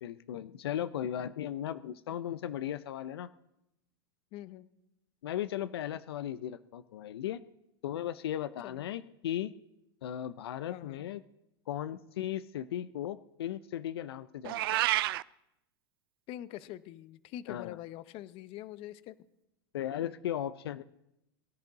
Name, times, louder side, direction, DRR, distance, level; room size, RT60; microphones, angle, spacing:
voice 1, 0.0-3.3 5.2-7.4 7.8-9.5 10.0-11.2 11.7-14.8 17.5-17.8 19.7-20.8, left 11 dB, 80° left, 13 dB, 0.6 m, -36 dB
voice 2, 4.3-4.7 8.6-8.8 10.7-11.1 16.3-19.2, left 13 dB, 45° left, 14 dB, 0.8 m, -44 dB
Meow, 14.4-15.2, right 16 dB, 70° right, 0.4 m, -28 dB
22.5 x 10.5 x 4.0 m, 0.85 s
hypercardioid pair, 115°, 13 cm